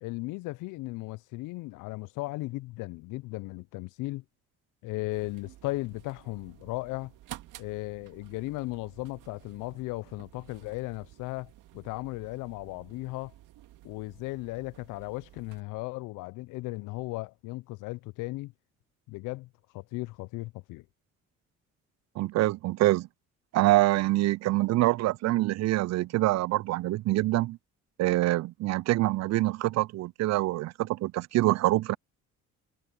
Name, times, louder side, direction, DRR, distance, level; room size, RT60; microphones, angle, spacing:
voice 1, 0.0-4.2 4.8-7.1 7.6-13.3 13.8-18.5 19.1-19.5 19.7-20.8, left 21 dB, 75° left, 0.6 m, -36 dB
sound 1, 5.1-15.6, right 15 dB, 75° right, 2.1 m, -52 dB
voice 2, 22.2-23.1 23.5-27.6 28.0-32.0, right 17 dB, 55° right, 0.4 m, -25 dB
supercardioid pair, 65°, 31 cm